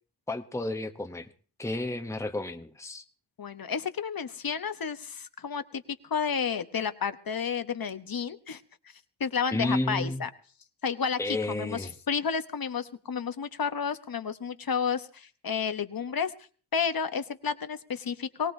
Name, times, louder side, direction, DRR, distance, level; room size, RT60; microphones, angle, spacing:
voice 1, 0.3-1.3 1.6-3.0 9.5-10.2 11.2-11.9, left 2 dB, 5° left, 7 dB, 0.9 m, -31 dB
voice 2, 3.4-8.6 9.2-10.3 10.8-16.3 16.7-18.5, left 6 dB, 55° left, 10 dB, 1.0 m, -31 dB
23.0 x 18.0 x 2.7 m, 0.41 s
cardioid pair, 65°, 41 cm